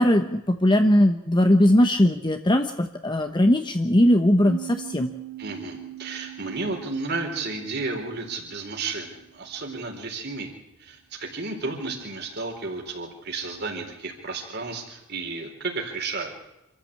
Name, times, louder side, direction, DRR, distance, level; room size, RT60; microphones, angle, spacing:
voice 1, 0.0-5.1, left 1 dB, 20° left, 6 dB, 1.0 m, -19 dB
sound 1, 4.5-9.8, right 14 dB, 80° right, 2.7 m, -42 dB
voice 2, 5.4-10.5 10.8-16.3, right 3 dB, 55° right, 1 dB, 4.1 m, -32 dB
26.5 x 14.0 x 8.7 m, 0.92 s
head